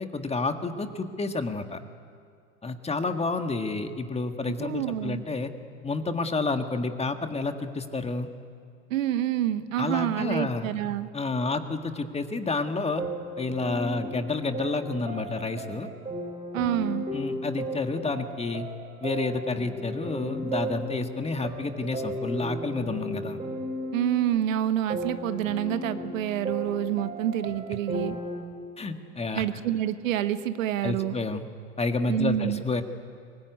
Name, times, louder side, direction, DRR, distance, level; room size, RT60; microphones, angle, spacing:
voice 1, 0.0-1.8 2.6-5.5 5.8-8.3 9.8-10.7 11.1-13.0 13.4-15.9 17.1-18.6 19.0-23.4 28.8-29.4 30.8-31.4 31.8-32.8, left 3 dB, 15° left, 7 dB, 1.7 m, -30 dB
voice 2, 4.6-5.2 8.9-11.1 16.5-17.1 23.9-28.2 29.3-31.1 32.1-32.6, right 11 dB, 75° right, 11 dB, 1.3 m, -27 dB
sound 1, 13.0-28.4, right 1 dB, 15° right, 4.8 m, -35 dB
23.5 x 20.5 x 9.6 m, 2.2 s
hypercardioid pair, 95°, 40 cm